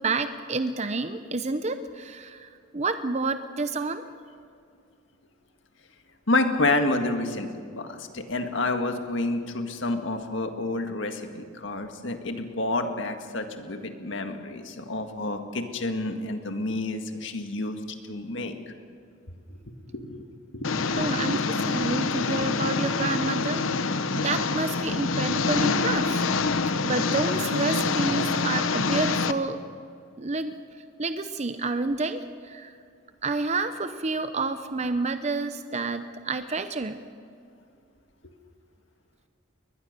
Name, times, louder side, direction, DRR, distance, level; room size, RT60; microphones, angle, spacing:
voice 1, 0.0-4.0 21.0-26.3 26.8-29.6 30.2-30.5 31.0-32.7 33.2-37.0, right 3 dB, 35° right, 10 dB, 0.7 m, -29 dB
voice 2, 6.3-17.8 18.1-18.6 19.5-19.6 19.9-20.3 20.5-20.7, left 2 dB, 70° left, 6 dB, 1.8 m, -29 dB
Engine, 20.6-29.3, left 4 dB, 90° left, 0.9 m, -26 dB
22.0 x 20.0 x 6.7 m, 2.3 s
head